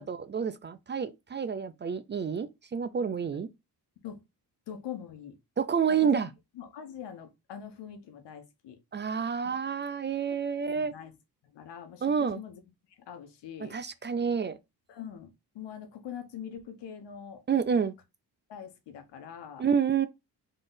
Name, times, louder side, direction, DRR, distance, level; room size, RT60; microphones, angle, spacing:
voice 1, 0.0-3.5 5.6-6.3 8.9-10.9 12.0-12.4 13.7-14.6 17.5-18.0 19.6-20.1, right 6 dB, 30° right, 0.4 m, -29 dB
voice 2, 4.7-5.4 5.9-6.1 6.5-8.8 10.7-11.1 11.4-12.6 12.9-13.8 14.9-17.4 18.5-19.6, left 8 dB, 85° left, 1.1 m, -43 dB
4.0 x 3.3 x 3.9 m
cardioid pair, 105°, 41 cm